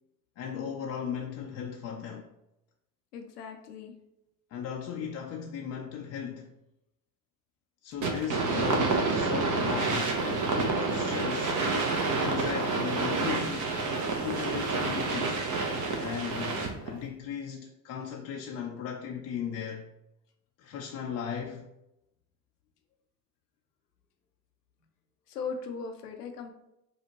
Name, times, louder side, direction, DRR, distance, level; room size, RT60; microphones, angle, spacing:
voice 1, 0.4-2.3 4.5-6.5 7.8-11.6 12.2-13.8 14.2-15.4 16.0-19.9 20.6-21.7, left 7 dB, 35° left, 0.5 m, -37 dB
voice 2, 3.1-3.9 25.3-26.5, left 5 dB, 85° left, 0.7 m, -38 dB
sound 1, 8.0-16.9, right 3 dB, 40° right, 0.9 m, -29 dB
5.2 x 2.4 x 3.0 m
hypercardioid pair, 65°, 46 cm